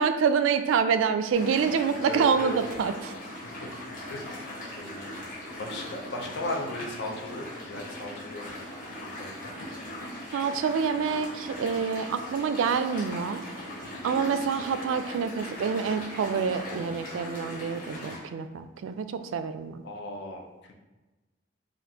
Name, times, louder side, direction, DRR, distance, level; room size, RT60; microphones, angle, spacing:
voice 1, 0.0-3.1 10.3-13.4 14.0-19.1 19.3-19.8, right 6 dB, 90° right, 10 dB, 0.3 m, -27 dB
sound 1, 1.3-18.2, left 1 dB, 45° left, 1.3 m, -39 dB
voice 2, 2.1-2.5 3.4-3.7 4.1-5.1 5.6-8.6 9.2-9.5 19.8-20.4, left 1 dB, 60° left, 1 dB, 0.6 m, -36 dB
5.0 x 2.5 x 2.8 m, 1.1 s
head